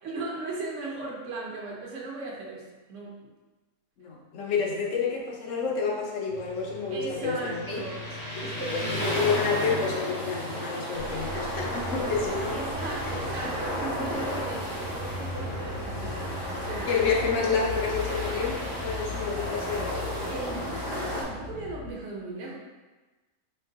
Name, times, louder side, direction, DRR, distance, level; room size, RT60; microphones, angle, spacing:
voice 1, 0.0-3.3 6.9-8.0 8.4-9.1 12.5-16.9 20.3-22.6, right 3 dB, 60° right, -3 dB, 1.0 m, -37 dB
voice 2, 4.0-7.8 8.6-12.6 13.1-13.2 16.9-20.0, left 5 dB, 65° left, -1 dB, 0.9 m, -29 dB
Motorcycle, 6.3-18.9, left 1 dB, 85° left, 2.2 m, -40 dB
sound 1, 9.0-21.2, equal, 25° right, 0.5 m, -34 dB
sound 2, 10.9-21.9, left 2 dB, 90° right, 1.1 m, -38 dB
4.4 x 2.8 x 2.6 m, 1.2 s
omnidirectional pair, 1.5 m